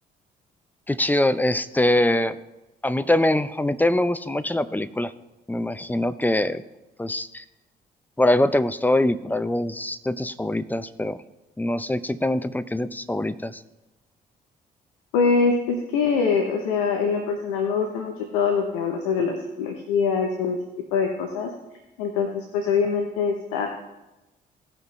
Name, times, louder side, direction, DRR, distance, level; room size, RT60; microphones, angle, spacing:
voice 1, 0.9-2.4 2.8-5.1 5.5-6.6 7.0-7.4 8.2-11.2 11.6-13.6, left 1 dB, 10° left, 14 dB, 0.6 m, -23 dB
voice 2, 15.1-20.6 20.9-21.5 22.0-23.7, left 5 dB, 80° left, 3 dB, 0.8 m, -24 dB
16.5 x 5.9 x 3.2 m, 0.99 s
hypercardioid pair, 45°, 21 cm